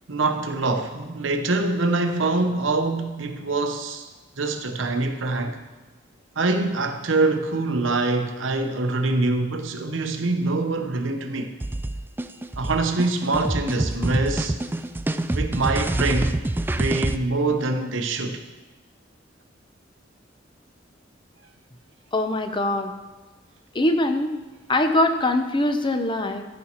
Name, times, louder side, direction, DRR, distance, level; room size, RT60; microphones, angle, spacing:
voice 1, 0.1-4.1 4.4-5.6 6.4-11.5 12.6-14.6 15.3-16.3 16.8-18.4, right 3 dB, 85° right, 6 dB, 0.9 m, -24 dB
sound 1, 11.6-17.2, right 1 dB, 10° right, 0.3 m, -26 dB
voice 2, 22.1-22.9 23.7-24.4 24.7-26.5, left 1 dB, 25° left, 7 dB, 0.7 m, -22 dB
13.5 x 5.5 x 4.4 m, 1.2 s
head